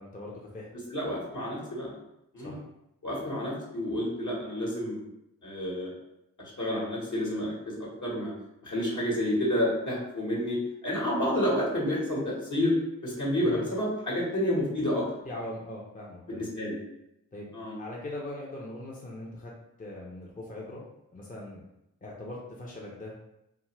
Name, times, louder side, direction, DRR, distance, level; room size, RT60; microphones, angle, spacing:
voice 1, 0.0-0.7 2.4-2.6 13.4-13.6 15.3-16.5 17.3-17.5 17.8-19.5 19.8-20.8 21.1-21.6 22.0-23.1, left 1 dB, 25° left, -3 dB, 0.7 m, -40 dB
voice 2, 0.7-1.9 2.3-2.6 3.0-5.0 5.4-5.9 6.4-8.3 8.6-12.7 13.0-15.1 16.3-16.8 17.5-17.8, left 1 dB, 55° left, -5 dB, 1.3 m, -29 dB
2.5 x 2.5 x 3.1 m, 0.86 s
supercardioid pair, 40°, 35 cm